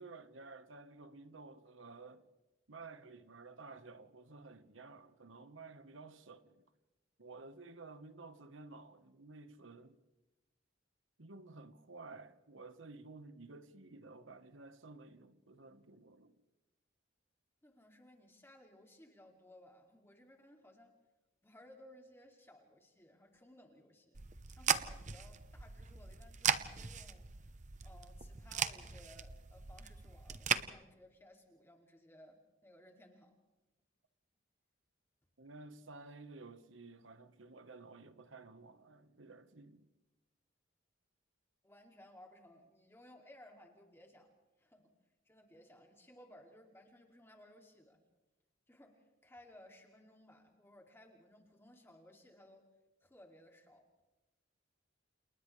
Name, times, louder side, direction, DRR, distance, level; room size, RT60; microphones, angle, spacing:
voice 1, 0.0-2.3 2.7-6.6 7.2-10.0 11.2-16.4 35.4-39.8, right 3 dB, 75° right, 1.3 m, -53 dB
voice 2, 17.6-20.9 21.4-27.3 27.8-33.3 41.6-44.9 45.2-48.0 48.7-52.6 53.0-53.8, left 1 dB, 10° left, 2.6 m, -60 dB
sound 1, 24.1-30.6, right 7 dB, 40° right, 0.9 m, -38 dB
30.0 x 29.0 x 3.3 m
head